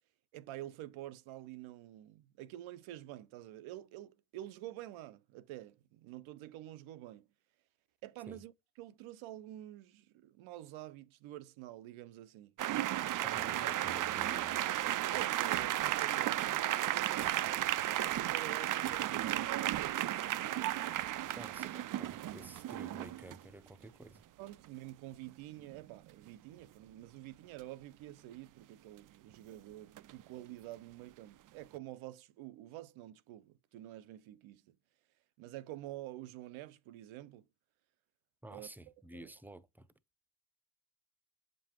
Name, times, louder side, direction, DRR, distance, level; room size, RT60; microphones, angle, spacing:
voice 1, 0.3-7.3 8.0-12.5 13.3-13.5 15.1-20.8 24.4-34.8 35.4-37.4 38.5-38.7 39.1-39.3, right 14 dB, 75° right, 0.7 m, -48 dB
sound 1, 12.6-23.4 25.3-25.4 25.7-25.9 30.0-30.2, right 13 dB, 45° right, 0.4 m, -34 dB
voice 2, 13.2-14.8 21.3-24.2 38.4-39.9, right 1 dB, 5° right, 0.7 m, -51 dB
7.3 x 5.3 x 2.8 m
supercardioid pair, 55°, 48 cm